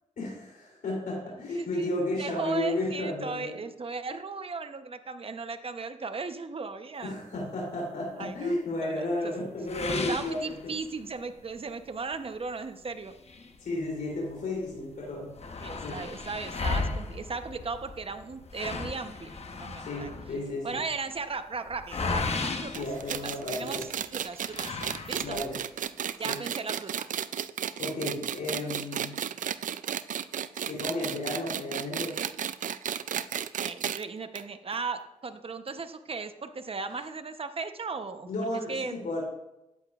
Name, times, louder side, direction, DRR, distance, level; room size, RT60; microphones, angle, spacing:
voice 1, 0.2-3.6 7.0-10.7 13.6-15.3 15.8-16.0 19.8-20.8 22.7-23.8 25.2-25.6 26.2-26.4 27.8-29.1 30.6-32.2 38.3-39.2, left 1 dB, 85° left, -3 dB, 3.3 m, -33 dB
voice 2, 1.5-1.9 2.2-7.2 8.2-9.3 10.1-13.1 15.6-20.1 20.6-24.7 25.1-25.4 26.2-27.1 33.6-38.9, right 4 dB, 45° right, 8 dB, 0.9 m, -37 dB
sound 1, 9.7-11.1 11.6-11.7 12.1-12.2 13.0-14.3 14.7-14.8 15.0-23.7 24.4-25.6, left 3 dB, 50° left, 1.1 m, -35 dB
sound 2, 22.7-34.0 34.3-34.4 34.7-34.8 35.7-35.8, right 9 dB, 70° right, 0.4 m, -33 dB
13.0 x 8.9 x 2.5 m, 0.89 s
cardioid pair, 60°, 14 cm